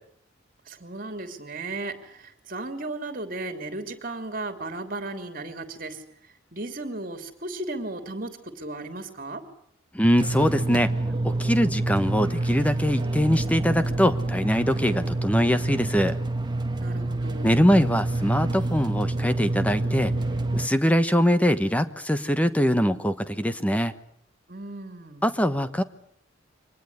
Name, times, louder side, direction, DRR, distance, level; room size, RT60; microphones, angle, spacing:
voice 1, 0.7-6.0 6.5-9.4 16.8-17.7 24.5-25.2, right 2 dB, 45° right, 8 dB, 3.1 m, -35 dB
voice 2, 9.9-10.9 11.2-16.2 17.4-20.1 20.5-23.9 25.2-25.8, equal, 5° left, 11 dB, 1.2 m, -22 dB
sound 1, 10.2-20.7, right 2 dB, 20° right, 1.3 m, -27 dB
24.5 x 19.5 x 9.6 m, 0.65 s
head